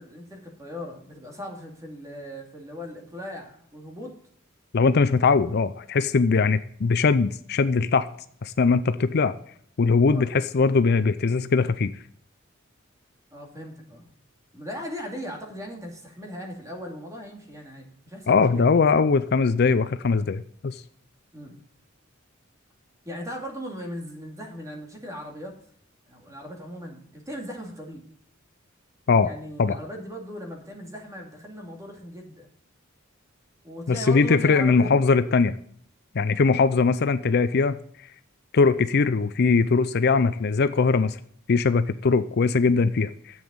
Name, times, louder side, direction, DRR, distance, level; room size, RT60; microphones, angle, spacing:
voice 1, 0.0-4.1 10.1-10.3 13.3-14.1 14.5-19.0 21.3-21.6 23.0-25.6 26.1-28.0 29.2-32.5 33.6-34.9, equal, 15° right, 1 dB, 2.5 m, -38 dB
voice 2, 4.7-8.1 8.4-9.3 9.8-11.9 18.3-20.8 29.1-29.3 29.6-29.8 33.9-35.6 36.1-37.8 38.5-41.2 41.5-43.1, left 4 dB, 55° left, 12 dB, 0.5 m, -21 dB
10.5 x 8.0 x 5.3 m, 0.63 s
head